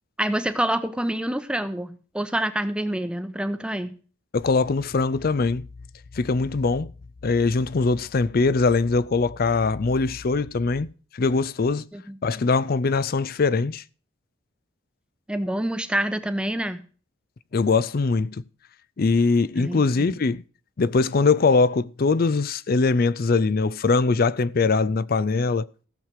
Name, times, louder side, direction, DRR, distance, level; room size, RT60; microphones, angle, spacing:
voice 1, 0.2-3.9 11.9-12.2 15.3-16.8 19.6-20.2, right 1 dB, 5° right, 0.8 m, -27 dB
voice 2, 4.3-5.7 6.1-6.9 7.2-10.9 11.1-11.9 12.2-13.8 17.5-18.4 19.0-20.4 20.8-25.7, left 4 dB, 45° left, 0.5 m, -22 dB
15.5 x 7.4 x 4.8 m
head